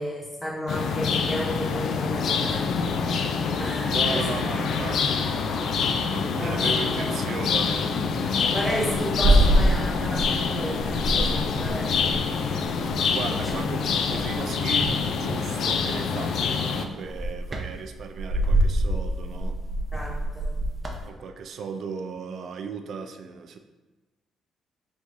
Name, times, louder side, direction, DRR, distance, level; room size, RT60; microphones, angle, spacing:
voice 1, 0.0-3.2 3.6-4.4 4.7-4.9 6.4-7.2 8.5-11.9 13.3-14.0 15.7-15.9 19.9-20.6, equal, 5° left, -4 dB, 1.1 m, -33 dB
sound 1, 0.7-16.9, left 5 dB, 70° left, 0.3 m, -26 dB
voice 2, 3.9-7.9 13.1-19.6 21.0-23.6, right 5 dB, 65° right, 7 dB, 0.4 m, -36 dB
sound 2, 8.4-10.5 10.8-13.0 13.4-15.0 16.1-16.4 16.8-21.1, right 1 dB, 30° right, 0.6 m, -25 dB
4.0 x 3.1 x 3.6 m, 1.1 s
cardioid pair, 90°, 0 cm